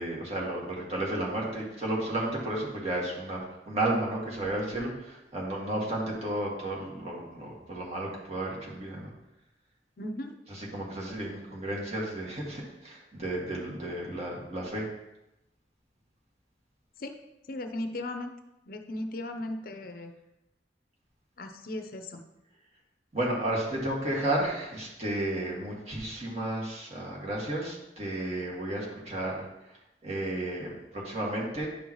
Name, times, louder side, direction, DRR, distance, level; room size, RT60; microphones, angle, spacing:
voice 1, 0.0-3.4 3.7-9.1 10.5-14.9 23.1-29.5 30.0-31.7, right 1 dB, 35° right, -4 dB, 2.1 m, -32 dB
voice 2, 10.0-10.3 17.0-17.2 17.5-18.3 18.7-20.1 21.4-22.2, left 1 dB, 55° left, 6 dB, 0.6 m, -36 dB
10.5 x 5.4 x 3.1 m, 0.91 s
head